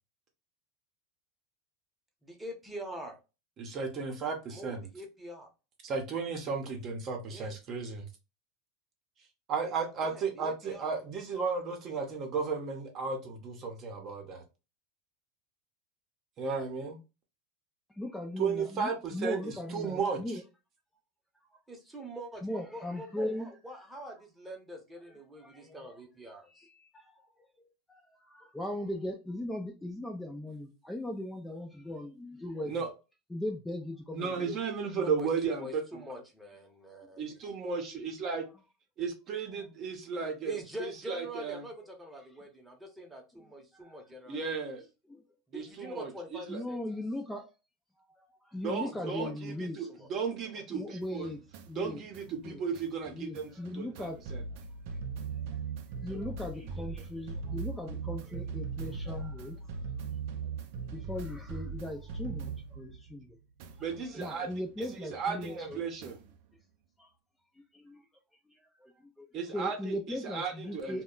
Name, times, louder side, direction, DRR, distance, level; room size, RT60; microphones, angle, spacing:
voice 1, 2.2-3.2 4.5-5.5 7.3-7.5 10.0-10.9 21.7-26.6 34.9-35.3 35.6-37.2 37.5-37.6 40.4-44.4 45.5-46.8 48.8-49.5 49.9-50.1 50.5-50.6, equal, 10° right, 0.8 m, -44 dB
voice 2, 3.6-4.9 5.8-8.1 9.5-14.4 16.4-17.0 18.4-20.4 32.6-32.9 34.1-36.0 37.2-38.4 39.0-41.6 44.3-44.8 45.5-46.6 48.6-51.3 51.8-54.4 59.1-59.2 63.8-64.5 65.0-66.2 69.3-71.0, right 5 dB, 40° right, 0.8 m, -35 dB
voice 3, 17.9-20.4 21.5-21.6 22.4-23.5 23.9-24.0 25.1-26.0 26.5-27.3 27.6-32.7 33.3-34.6 39.6-39.7 43.7-44.0 45.1-45.2 46.5-47.5 48.2-49.9 50.7-51.4 51.7-52.0 52.4-52.6 53.1-54.2 55.4-55.5 56.0-59.6 60.4-60.5 60.9-63.4 64.1-65.8 67.0-67.1 67.7-68.1 68.5-71.0, left 1 dB, 10° left, 0.4 m, -39 dB
sound 1, 51.0-63.3 63.6-66.4, right 5 dB, 65° right, 0.4 m, -40 dB
2.1 x 2.0 x 3.7 m
supercardioid pair, 115°, 0 cm